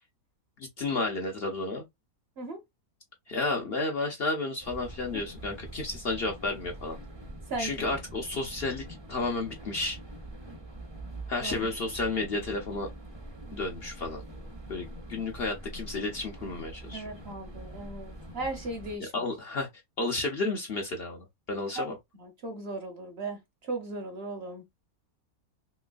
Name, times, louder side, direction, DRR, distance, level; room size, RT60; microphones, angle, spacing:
voice 1, 0.8-1.8 3.3-7.0 7.6-10.0 11.3-12.9 13.5-14.2 14.7-17.1 19.1-19.7 20.0-22.0, left 2 dB, 55° left, 0.8 m, -32 dB
sound 1, 4.6-19.0, right 1 dB, 25° right, 0.7 m, -44 dB
voice 2, 7.5-7.9 11.4-11.7 16.9-19.1 21.7-24.6, right 2 dB, 50° right, 0.9 m, -37 dB
3.1 x 3.0 x 2.4 m
omnidirectional pair, 1.5 m